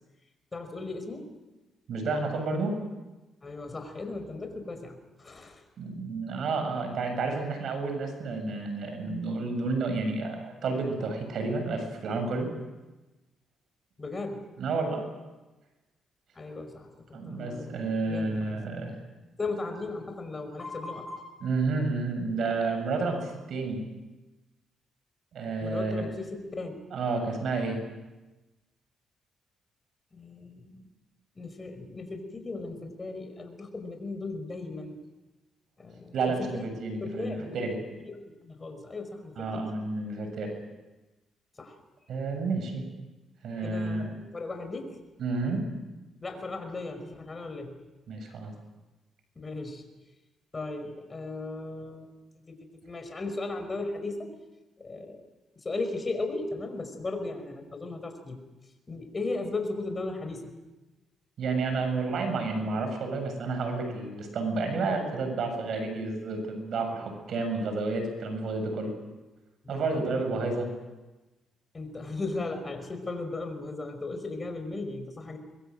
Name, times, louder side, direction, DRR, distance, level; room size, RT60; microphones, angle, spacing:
voice 1, 0.5-1.3 3.4-5.6 14.0-14.5 16.4-18.6 19.4-21.5 25.6-26.8 30.1-30.8 31.4-35.0 35.8-36.7 37.0-37.6 38.0-39.7 41.6-41.8 43.6-45.0 46.2-47.8 49.4-49.8 50.5-52.1 52.5-52.6 52.8-54.3 54.8-55.2 55.6-58.4 58.9-60.5 69.6-70.2 71.7-75.4, left 3 dB, 30° left, 6 dB, 5.5 m, -36 dB
voice 2, 1.9-2.8 5.8-12.5 14.6-15.0 17.1-19.0 21.4-23.8 25.3-26.1 26.9-27.8 36.1-37.8 39.4-40.5 42.1-42.9 43.4-44.1 45.2-45.7 48.1-48.5 61.4-68.9 69.7-70.7, right 3 dB, 65° right, 6 dB, 7.3 m, -30 dB
25.0 x 22.0 x 7.9 m, 1.1 s
cardioid pair, 90°, 0 cm